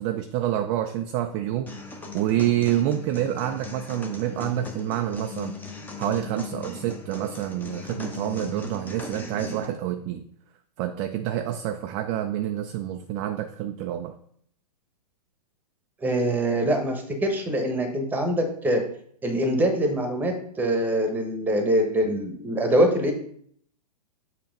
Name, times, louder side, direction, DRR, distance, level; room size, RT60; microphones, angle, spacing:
voice 1, 0.0-5.6 6.0-10.2 10.8-14.2, right 12 dB, 25° right, 7 dB, 0.3 m, -28 dB
sound 1, 1.7-9.6, left 3 dB, 10° left, 0.7 m, -38 dB
voice 2, 16.0-18.8 19.2-23.1, right 1 dB, 10° right, 4 dB, 1.1 m, -24 dB
6.8 x 2.9 x 5.1 m, 0.62 s
hypercardioid pair, 120°, 21 cm